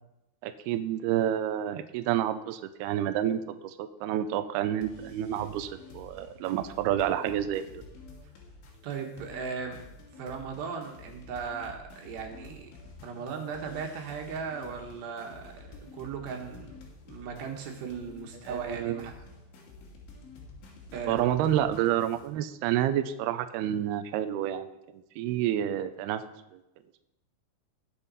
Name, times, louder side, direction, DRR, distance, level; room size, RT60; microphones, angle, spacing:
voice 1, 0.4-7.8 18.5-19.1 21.1-26.2 26.5-26.6, right 11 dB, 90° right, 9 dB, 2.3 m, -29 dB
sound 1, 4.8-22.3, left 3 dB, 75° left, 4.5 m, -50 dB
voice 2, 8.8-9.8 10.2-12.7 13.0-16.7 17.0-19.1 20.9-21.3, right 5 dB, 70° right, 2 dB, 3.4 m, -37 dB
19.5 x 7.5 x 4.1 m, 0.90 s
omnidirectional pair, 5.4 m